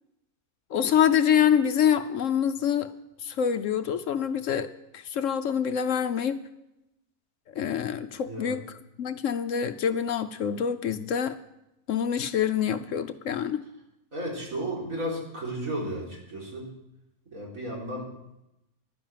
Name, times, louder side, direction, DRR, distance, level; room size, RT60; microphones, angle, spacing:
voice 1, 0.7-2.9 3.2-4.7 4.9-6.4 7.5-8.6 9.0-11.4 11.9-13.6, left 8 dB, 65° left, 11 dB, 1.0 m, -26 dB
voice 2, 8.2-8.6 14.1-16.7 17.3-18.1, right 1 dB, 70° right, -3 dB, 4.2 m, -33 dB
11.5 x 10.5 x 7.5 m, 0.88 s
omnidirectional pair, 1.5 m